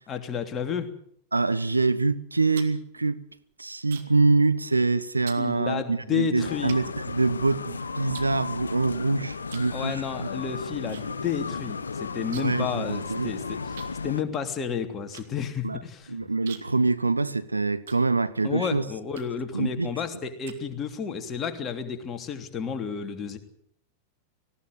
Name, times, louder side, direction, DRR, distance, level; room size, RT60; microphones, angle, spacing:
voice 1, 0.1-0.9 5.4-6.8 9.7-16.3 18.4-23.4, left 7 dB, 25° left, 3.0 m, -31 dB
voice 2, 1.3-3.2 3.6-10.3 12.4-13.3 15.6-15.8 16.1-18.8 19.5-19.9, right 3 dB, 80° right, 0.9 m, -25 dB
sound 1, 2.2-4.3 4.6-4.9 5.3-5.5 6.1-6.2 6.7-7.6 8.1-9.0 9.4-9.8 10.1-11.0 11.3-11.4 11.7-12.7 13.0-13.1 13.8-18.5 19.1-19.5 20.0-21.1, right 9 dB, 60° right, 2.4 m, -47 dB
sound 2, 6.4-14.2, left 5 dB, 75° left, 0.9 m, -35 dB
18.5 x 17.0 x 9.5 m
figure-of-eight pair, 90°, 0 cm